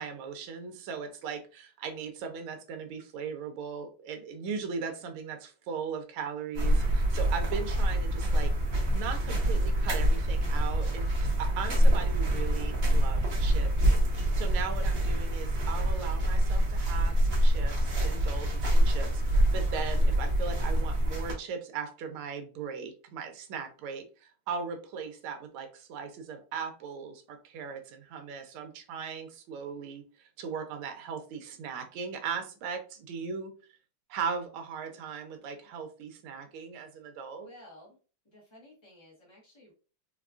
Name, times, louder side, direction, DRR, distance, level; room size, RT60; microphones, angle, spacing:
voice 1, 0.0-8.5 8.9-11.1 11.4-19.2 19.5-30.0 30.4-33.5 34.1-37.5, right 6 dB, 80° right, 5 dB, 1.5 m, -38 dB
sound 1, 6.5-21.3, right 1 dB, 50° right, 0.7 m, -26 dB
voice 2, 37.4-38.0 38.3-39.7, left 1 dB, 35° left, -5 dB, 0.4 m, -53 dB
4.2 x 2.2 x 2.4 m, 0.36 s
omnidirectional pair, 2.3 m